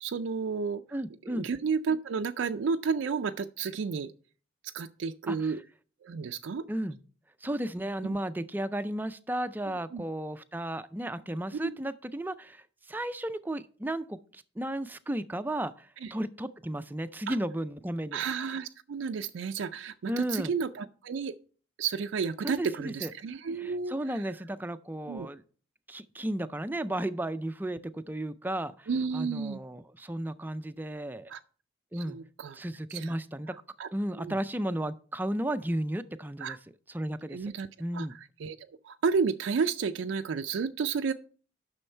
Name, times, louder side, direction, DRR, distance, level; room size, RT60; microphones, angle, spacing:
voice 1, 0.0-0.8 1.3-4.1 4.7-5.6 6.0-6.6 8.0-8.2 9.9-10.0 11.6-11.7 16.0-16.1 17.3-17.4 18.1-21.3 21.8-24.2 25.1-25.3 28.9-29.6 31.3-31.4 31.9-32.6 32.9-33.1 33.8-33.9 34.2-34.3 36.4-36.6 37.3-37.7 37.9-41.1, right 5 dB, 90° right, 7 dB, 0.4 m, -32 dB
voice 2, 0.9-1.5 5.3-5.6 6.7-7.0 7.4-18.2 20.1-20.5 22.4-23.1 23.5-25.4 25.9-31.3 31.9-32.2 32.5-33.5 33.9-36.6 36.9-37.5 37.8-38.2, right 1 dB, 10° right, 12 dB, 0.4 m, -34 dB
9.9 x 6.2 x 4.4 m, 0.42 s
head